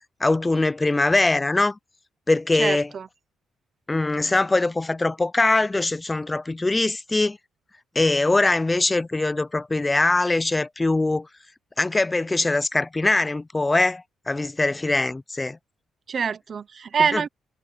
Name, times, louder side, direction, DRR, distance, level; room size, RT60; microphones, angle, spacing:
voice 1, 0.2-1.8 2.3-2.9 3.9-7.4 8.0-11.3 11.8-15.6 17.1-17.2, left 2 dB, 20° left, 0.5 m, -22 dB
voice 2, 2.5-3.1 16.1-17.3, right 6 dB, 45° right, 0.9 m, -25 dB
cardioid pair, 90°, 0 cm